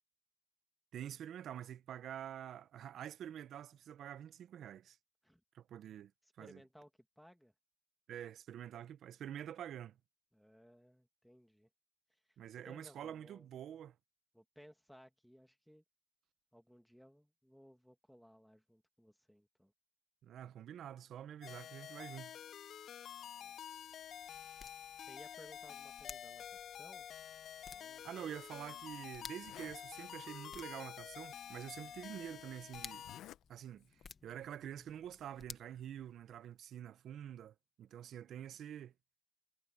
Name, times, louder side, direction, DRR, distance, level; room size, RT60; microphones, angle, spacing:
voice 1, 0.9-5.0 5.5-6.1 6.4-6.6 8.1-10.0 12.4-13.9 20.2-22.3 28.0-33.0 33.5-38.9, right 10 dB, 60° right, 0.9 m, -47 dB
voice 2, 6.2-6.9 7.2-7.5 10.3-11.7 12.1-12.2 12.6-13.5 14.3-15.8 16.5-19.7 23.2-23.6 25.0-27.1 27.6-28.1, equal, ahead, 2.4 m, -61 dB
sound 1, 21.4-33.2, left 9 dB, 55° left, 0.4 m, -49 dB
sound 2, 23.3-36.6, left 5 dB, 35° left, 1.1 m, -57 dB
Zipper (clothing), 28.3-28.4 28.9-29.0 29.3-29.9 30.7-30.8 31.8-31.9 32.9-33.4 33.8-34.1, left 12 dB, 75° left, 1.0 m, -55 dB
cardioid pair, 115°, 0 cm